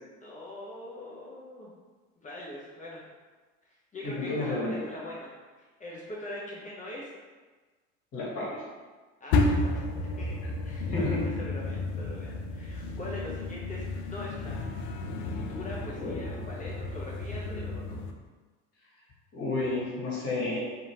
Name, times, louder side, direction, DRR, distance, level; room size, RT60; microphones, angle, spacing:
voice 1, 0.2-1.7 2.2-3.0 3.6-5.3 5.6-7.1 8.2-8.6 9.2-10.4 10.6-14.5 15.4-18.0, left 1 dB, 20° left, -5 dB, 0.6 m, -42 dB
voice 2, 4.0-4.8 8.1-8.6 10.9-11.2 16.0-16.2 19.3-20.6, left 2 dB, 40° left, -6 dB, 1.4 m, -31 dB
sound 1, 9.3-18.1, left 2 dB, 60° left, 0.5 m, -32 dB
2.8 x 2.6 x 2.8 m, 1.3 s
figure-of-eight pair, 65°, 38 cm